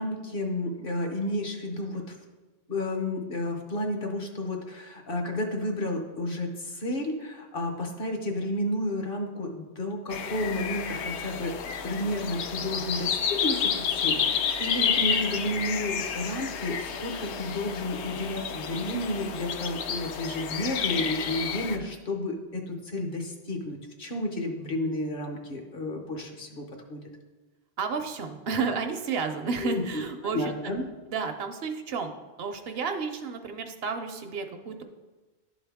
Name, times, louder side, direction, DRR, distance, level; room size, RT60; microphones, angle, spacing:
voice 1, 0.0-2.1 2.7-11.6 11.8-27.0 29.6-29.8 30.2-30.8, left 1 dB, 55° left, 3 dB, 1.1 m, -31 dB
sound 1, 10.1-21.8, left 7 dB, 80° left, 0.9 m, -30 dB
voice 2, 27.8-30.6 31.1-32.1 32.4-34.8, right 5 dB, 65° right, 6 dB, 0.8 m, -31 dB
11.5 x 3.9 x 3.5 m, 1.2 s
omnidirectional pair, 1.1 m